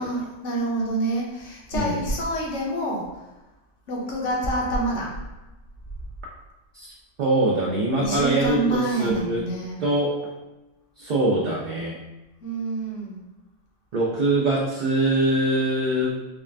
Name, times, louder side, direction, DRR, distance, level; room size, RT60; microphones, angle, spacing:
voice 1, 0.0-3.0 3.9-5.1 8.0-9.8 12.4-13.2, right 1 dB, 80° left, -2 dB, 1.2 m, -27 dB
voice 2, 7.2-9.4 9.8-10.1 11.0-12.0 13.9-16.2, right 1 dB, 55° right, -4 dB, 0.6 m, -23 dB
3.8 x 2.4 x 3.2 m, 1.0 s
omnidirectional pair, 1.2 m